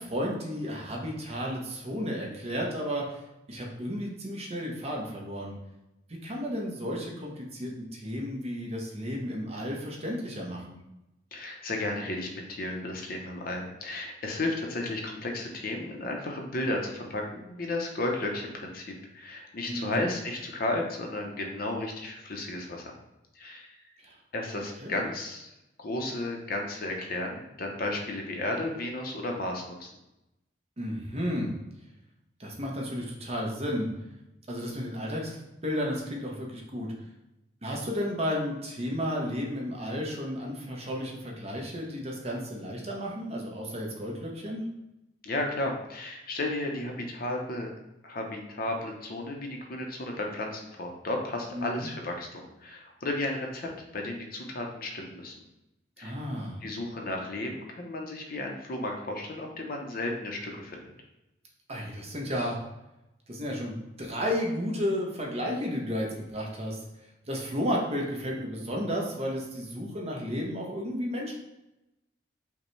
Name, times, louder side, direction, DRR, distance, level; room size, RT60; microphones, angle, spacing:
voice 1, 0.0-3.2 3.5-5.5 6.2-10.8 19.7-20.1 24.0-24.2 24.8-25.0 30.8-31.5 32.4-33.9 34.5-35.3 35.6-36.9 37.6-44.6 51.5-51.9 56.0-56.6 61.7-62.6 63.3-66.8 67.3-71.3, equal, 35° right, -1 dB, 0.8 m, -33 dB
voice 2, 11.3-18.9 19.1-22.9 23.3-23.7 24.3-25.5 25.8-29.9 45.2-47.7 48.0-55.3 56.0-56.2 56.6-60.8, left 2 dB, 55° left, 2 dB, 0.7 m, -33 dB
5.2 x 2.2 x 3.1 m, 0.91 s
head